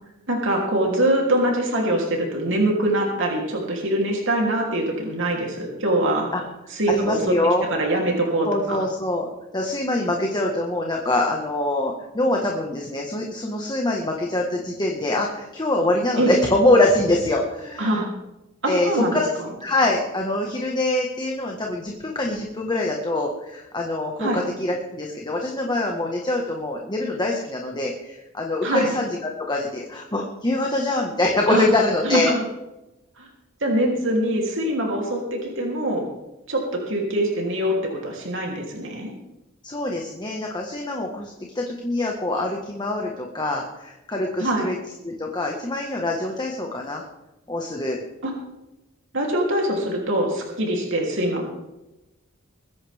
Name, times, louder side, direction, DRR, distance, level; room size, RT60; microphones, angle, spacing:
voice 1, 0.3-6.3 6.7-7.4 7.7-8.8 16.2-16.3 17.8-18.1 18.6-19.5 24.2-24.4 28.6-28.9 31.5-31.7 32.0-32.4 33.2-33.3 33.6-36.1 36.5-39.1 44.4-44.7 48.2-48.3 49.1-51.6, right 1 dB, 65° right, -1 dB, 3.2 m, -23 dB
voice 2, 6.9-7.7 8.4-18.0 18.7-19.3 19.6-32.3 39.6-44.7 45.0-47.0 47.5-48.0, left 2 dB, 20° left, 0 dB, 1.6 m, -24 dB
22.0 x 10.5 x 3.6 m, 0.96 s
head